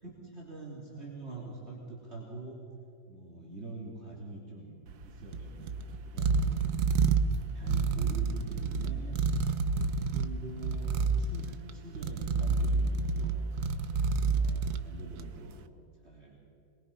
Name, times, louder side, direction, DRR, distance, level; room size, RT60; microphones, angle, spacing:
voice 1, 0.0-2.6 3.1-4.7 5.0-6.7 7.5-9.2 9.7-13.4 14.1-15.6 16.0-16.4, right 2 dB, 35° right, -4 dB, 3.4 m, -45 dB
sound 1, 4.9-15.5, right 4 dB, 65° right, 1.3 m, -30 dB
23.0 x 22.0 x 5.5 m, 2.8 s
omnidirectional pair, 2.0 m